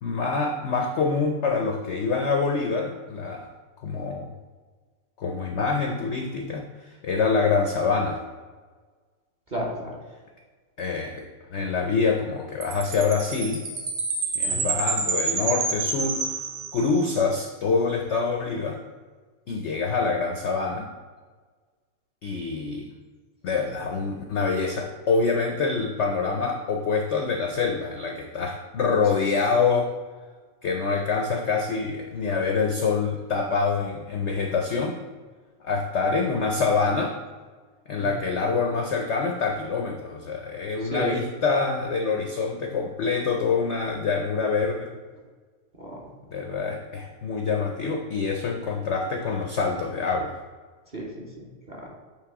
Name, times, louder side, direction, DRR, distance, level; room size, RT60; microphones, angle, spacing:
voice 1, 0.0-3.5 3.8-4.3 5.2-8.2 10.8-11.3 11.5-13.6 14.3-16.4 16.7-18.8 19.5-20.9 22.2-22.9 23.4-29.9 30.6-35.0 35.6-37.1 37.9-44.9 46.3-50.4, left 4 dB, 70° left, 2 dB, 0.6 m, -26 dB
voice 2, 9.5-10.0 14.5-14.7 38.0-38.2 40.8-41.2 45.8-46.0 50.9-51.9, equal, 35° right, -2 dB, 0.8 m, -33 dB
Chime, 12.6-17.1, right 4 dB, 65° right, 1.4 m, -28 dB
8.7 x 3.1 x 4.7 m, 1.4 s
omnidirectional pair, 1.9 m